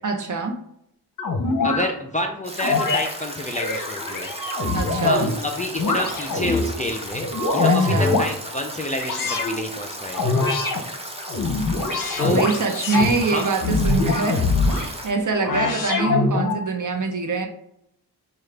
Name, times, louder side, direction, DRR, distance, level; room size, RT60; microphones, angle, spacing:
voice 1, 0.0-0.6 4.7-5.3 7.6-8.2 12.2-17.5, right 4 dB, 50° right, 4 dB, 0.7 m, -25 dB
sound 1, 1.2-1.9 2.6-3.1 3.5-5.3 5.8-6.7 7.1-8.3 9.0-9.6 10.1-10.8 11.3-13.1 13.6-14.8 15.4-16.6, left 3 dB, 55° left, 0.7 m, -23 dB
voice 2, 1.6-4.3 5.0-10.3 12.2-12.4 13.2-13.6, left 1 dB, 20° left, 2 dB, 0.4 m, -28 dB
Stream / Drip / Trickle dribble, 2.4-15.1, equal, 15° right, 0.7 m, -35 dB
Breathing, 4.3-5.4 5.9-6.5 7.2-8.3, right 4 dB, 85° right, 0.8 m, -35 dB
4.8 x 2.4 x 3.3 m, 0.76 s
wide cardioid pair, 80°, 39 cm